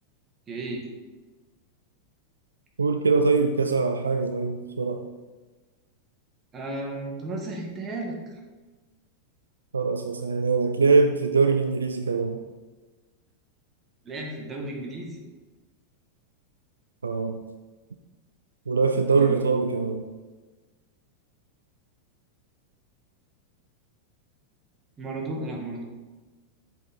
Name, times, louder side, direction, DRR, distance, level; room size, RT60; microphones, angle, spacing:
voice 1, 0.5-0.9 6.5-8.2 14.0-15.2 19.1-19.5 25.0-25.8, right 2 dB, 20° right, 0 dB, 1.5 m, -34 dB
voice 2, 2.8-5.1 9.7-12.4 17.0-17.4 18.7-20.1, right 4 dB, 75° right, 6 dB, 0.4 m, -23 dB
7.0 x 4.3 x 4.1 m, 1.2 s
figure-of-eight pair, 90°, 0 cm